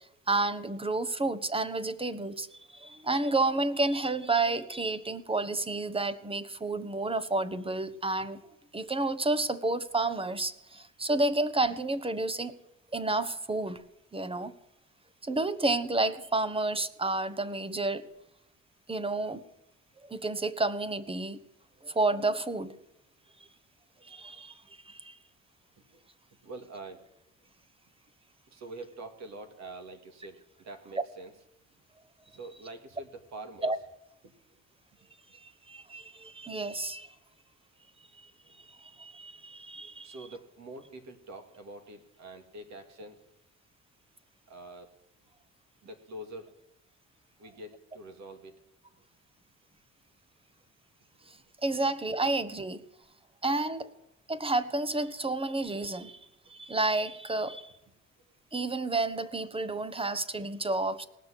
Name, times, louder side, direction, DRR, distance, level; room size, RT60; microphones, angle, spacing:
voice 1, 0.3-8.4 8.7-12.6 12.9-13.8 14.1-14.5 15.2-18.1 18.9-19.4 20.0-21.4 21.8-22.7 24.0-24.5 24.9-25.1 33.6-33.8 35.4-37.1 38.2-38.3 38.6-40.2 51.6-52.8 53.4-53.9 54.3-56.2 56.5-57.7 58.5-61.0, right 2 dB, 20° right, 14 dB, 1.1 m, -30 dB
voice 2, 26.4-27.1 28.5-31.3 32.3-33.7 34.5-34.6 35.3-35.4 40.0-43.2 44.5-44.9 45.8-46.5 47.4-48.6 51.2-51.3 51.8-51.9 55.5-55.6 58.3-58.4, right 2 dB, 65° right, 6 dB, 2.4 m, -45 dB
18.0 x 6.6 x 9.9 m, 0.86 s
cardioid pair, 90°, 30 cm